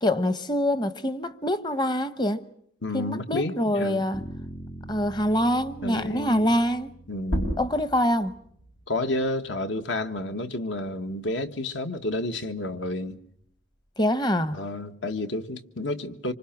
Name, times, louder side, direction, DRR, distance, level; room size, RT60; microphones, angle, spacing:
voice 1, 0.0-2.4 2.9-4.2 4.9-6.9 7.6-8.3 14.0-14.6, equal, 20° left, 1.0 m, -25 dB
voice 2, 2.8-4.1 5.8-6.5 7.1-7.5 8.9-13.2 14.5-16.3, left 2 dB, 70° left, 1.5 m, -30 dB
sound 1, 4.1-8.2, right 1 dB, 40° left, 1.9 m, -43 dB
sound 2, 7.2-12.4 12.8-14.6, equal, 85° left, 6.2 m, -37 dB
26.0 x 26.0 x 6.0 m
head